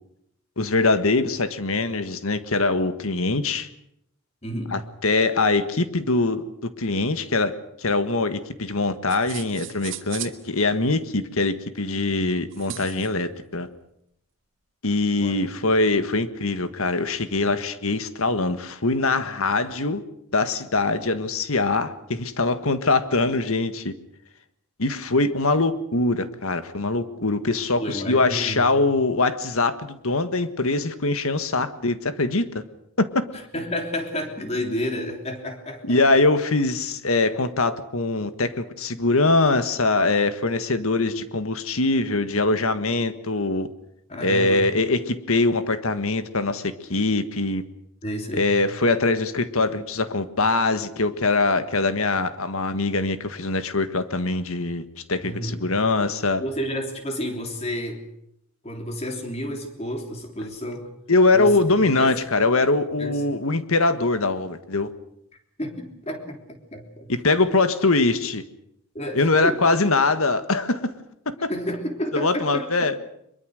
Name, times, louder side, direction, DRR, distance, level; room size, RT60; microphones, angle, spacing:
voice 1, 0.6-3.7 4.7-6.4 6.8-13.7 14.8-20.0 20.3-23.9 24.8-32.4 33.0-33.3 35.8-43.7 44.2-47.6 48.3-56.4 61.1-64.9 67.1-68.4 69.1-70.9 71.2-71.5 72.1-73.0, left 3 dB, 75° left, 11 dB, 1.7 m, -23 dB
voice 2, 4.4-4.7 15.2-15.3 27.8-28.9 33.5-36.0 44.1-44.7 48.0-48.5 55.2-55.6 56.4-58.0 58.6-60.9 61.3-62.2 63.0-63.2 65.6-67.4 68.9-69.6 71.5-72.9, equal, 30° left, 4 dB, 3.3 m, -31 dB
sound 1, 9.1-10.4 12.5-13.1, right 11 dB, 60° right, 1.7 m, -36 dB
23.5 x 22.5 x 6.5 m, 0.76 s
head